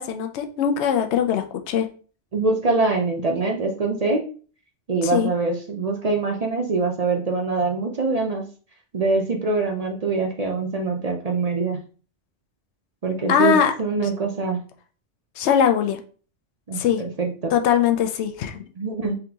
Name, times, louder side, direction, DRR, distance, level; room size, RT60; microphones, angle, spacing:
voice 1, 0.0-1.9 5.0-5.3 13.3-13.7 15.4-16.0 16.7-17.0 17.5-18.6, left 8 dB, 70° left, 6 dB, 0.9 m, -21 dB
voice 2, 2.3-4.2 4.9-8.4 8.9-11.8 13.0-14.6 16.7-17.5 18.8-19.2, right 3 dB, 40° right, 2 dB, 0.6 m, -24 dB
3.9 x 3.4 x 2.9 m, 0.40 s
omnidirectional pair, 1.2 m